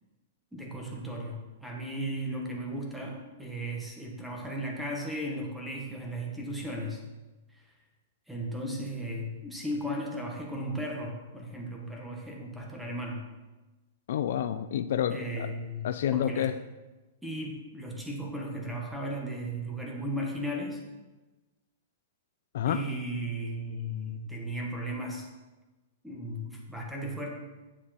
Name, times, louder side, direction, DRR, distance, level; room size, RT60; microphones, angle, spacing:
voice 1, 0.5-7.0 7.5-7.6 8.3-13.3 15.1-16.5 17.2-20.8 22.7-25.3 26.0-27.3, equal, 5° right, -1 dB, 1.6 m, -36 dB
voice 2, 14.1-15.5 15.8-16.5 22.5-22.8, left 10 dB, 65° left, 11 dB, 0.4 m, -29 dB
8.9 x 7.2 x 4.4 m, 1.1 s
hypercardioid pair, 150°, 0 cm